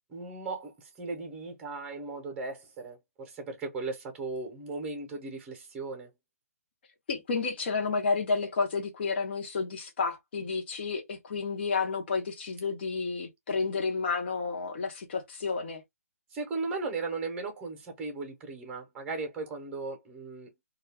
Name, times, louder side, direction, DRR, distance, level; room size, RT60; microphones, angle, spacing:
voice 1, 0.1-6.1 16.3-20.5, right 3 dB, 10° right, 0.8 m, -37 dB
voice 2, 7.1-15.8, left 4 dB, 40° left, 0.8 m, -31 dB
2.3 x 2.2 x 3.3 m
hypercardioid pair, 155°, 8 cm